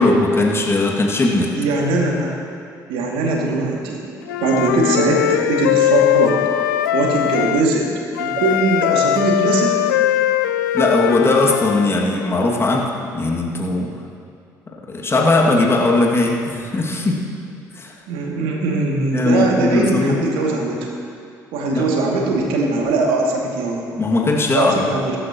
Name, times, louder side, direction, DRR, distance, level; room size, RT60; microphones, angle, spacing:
voice 1, 0.0-1.5 10.7-13.9 14.9-17.3 17.8-17.9 19.1-20.2 21.7-21.9 24.0-24.9, left 2 dB, 25° left, -1 dB, 2.2 m, -18 dB
voice 2, 1.5-2.3 2.9-4.1 4.4-6.4 6.9-7.9 8.2-9.8 18.1-20.9 21.5-23.8 24.5-25.2, right 3 dB, 60° right, -1 dB, 2.4 m, -20 dB
Wind instrument woodwind instrument, 4.3-7.7 8.2-11.9, left 13 dB, 75° left, 0.4 m, -20 dB
21.5 x 12.0 x 3.0 m, 2.3 s
figure-of-eight pair, 50°, 10 cm